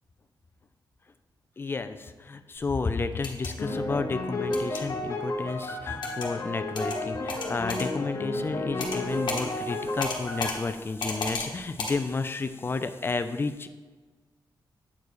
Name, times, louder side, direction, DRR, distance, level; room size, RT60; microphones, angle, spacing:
voice 1, 1.6-13.7, left 4 dB, 30° left, 10 dB, 0.4 m, -31 dB
sound 1, 3.1-3.5 4.5-4.8 6.0-6.3 6.7-7.0 7.3-7.9 8.8-9.0 9.3-9.4 10.0-10.6 11.0-11.5 11.8-11.9, left 3 dB, 65° left, 1.1 m, -32 dB
sound 2, 3.6-10.5, left 2 dB, 45° left, 1.0 m, -32 dB
8.3 x 4.6 x 3.1 m, 1.3 s
wide cardioid pair, 115°, 8 cm